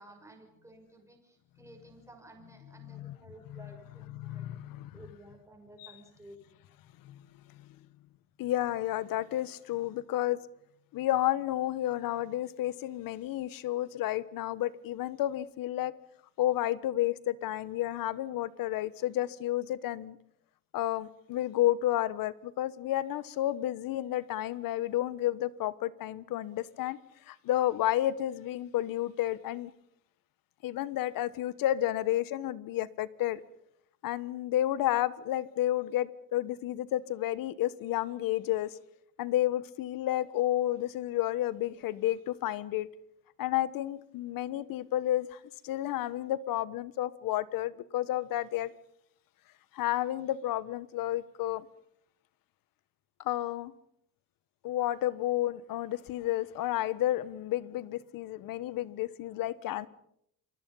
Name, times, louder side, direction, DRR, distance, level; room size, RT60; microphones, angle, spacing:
voice 1, 0.0-4.5 4.9-6.4, right 1 dB, 10° right, 6.0 m, -54 dB
voice 2, 2.8-3.2 3.5-3.6 4.1-4.9 5.8-5.9 7.0-7.2 7.6-7.7 8.4-10.5 10.9-16.0 16.4-20.2 20.7-27.0 27.3-29.7 30.6-33.4 34.0-38.8 39.2-42.9 43.4-48.7 49.7-51.7 53.2-53.7 54.6-59.9, left 13 dB, 70° left, 1.3 m, -31 dB
28.5 x 24.0 x 5.6 m
cardioid pair, 145°, 35 cm